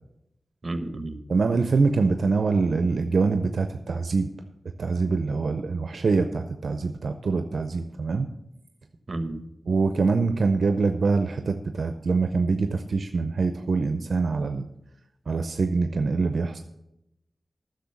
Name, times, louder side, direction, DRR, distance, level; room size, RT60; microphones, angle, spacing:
voice 1, 0.6-1.2 9.1-9.5, right 2 dB, 45° right, 9 dB, 1.2 m, -31 dB
voice 2, 1.3-4.3 4.8-8.3 9.7-14.7 15.3-16.6, right 4 dB, 80° right, 8 dB, 0.5 m, -24 dB
10.0 x 6.5 x 7.0 m, 0.86 s
cardioid pair, 55°, 0 cm